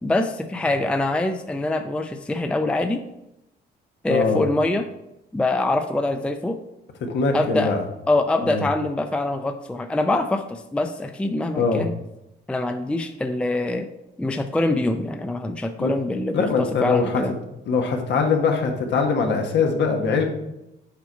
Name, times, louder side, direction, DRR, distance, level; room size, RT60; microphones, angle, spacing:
voice 1, 0.0-3.0 4.0-4.9 5.3-6.6 7.3-7.7 8.1-11.9 12.5-13.9 14.2-16.5 16.8-17.3, left 2 dB, 5° left, 7 dB, 0.4 m, -24 dB
voice 2, 4.1-4.5 7.0-7.8 8.4-8.7 11.5-11.8 15.8-15.9 16.3-17.2 17.7-20.2, left 4 dB, 70° left, 3 dB, 1.3 m, -22 dB
7.6 x 4.6 x 4.2 m, 0.88 s
cardioid pair, 115°, 19 cm